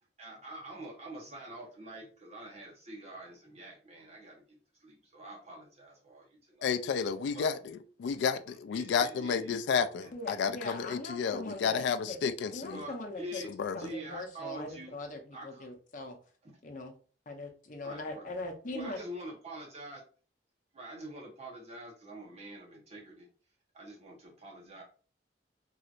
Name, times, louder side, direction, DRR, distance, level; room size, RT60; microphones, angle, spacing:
voice 1, 0.2-6.7 7.3-7.5 8.5-9.6 10.0-10.1 12.7-13.5 13.8-14.9 15.3-15.7 16.4-16.5 17.8-18.2 18.7-20.0 20.7-23.3 23.7-24.8, right 1 dB, 40° right, 1.0 m, -46 dB
voice 2, 6.6-7.5 8.0-8.4 8.7-12.8 13.6-13.8, left 6 dB, 75° left, 0.3 m, -31 dB
voice 3, 10.1-12.2 12.5-13.4 13.7-16.2 16.6-16.9 17.3-19.0, left 2 dB, 45° left, 0.7 m, -41 dB
3.1 x 2.8 x 2.5 m
head